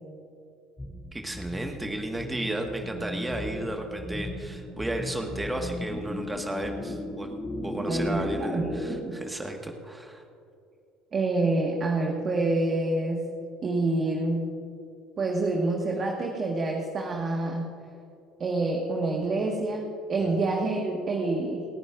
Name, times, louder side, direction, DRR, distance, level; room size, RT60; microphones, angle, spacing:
sound 1, 0.8-9.0, left 1 dB, 15° left, 2.7 m, -36 dB
voice 1, 1.1-7.3 7.6-10.2, right 1 dB, 10° right, 3 dB, 1.6 m, -33 dB
voice 2, 7.8-9.2 11.1-13.2 13.6-14.5 15.2-17.7 18.4-21.7, right 2 dB, 40° right, 1 dB, 1.6 m, -27 dB
29.0 x 9.8 x 2.5 m, 2.6 s
hypercardioid pair, 70°, 0 cm